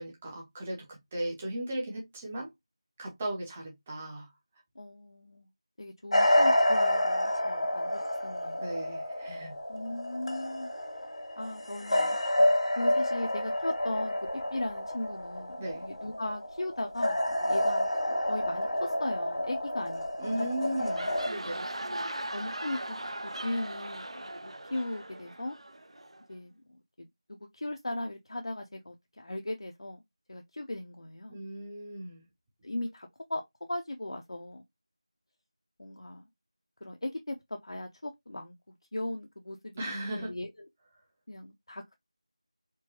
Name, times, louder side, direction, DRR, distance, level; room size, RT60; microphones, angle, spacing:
voice 1, 0.0-2.5 3.0-4.3 8.6-9.6 15.6-15.8 20.2-21.7 31.3-32.2 39.8-40.3, right 1 dB, 10° right, 0.6 m, -36 dB
voice 2, 4.8-5.5 5.8-8.7 9.7-10.7 11.4-12.2 12.8-17.9 18.3-20.5 21.1-21.2 21.9-22.0 22.3-23.0 23.2-25.6 26.3-26.6 27.0-30.0 30.3-31.4 32.6-33.4 33.7-34.6 35.8-36.2 36.8-38.5 38.9-40.5 41.3-41.9, left 1 dB, 65° left, 0.6 m, -38 dB
sound 1, 6.1-21.3, left 1 dB, 85° left, 1.6 m, -29 dB
sound 2, 20.7-26.2, right 1 dB, 75° right, 0.7 m, -39 dB
4.5 x 2.2 x 2.9 m
figure-of-eight pair, 175°, 3 cm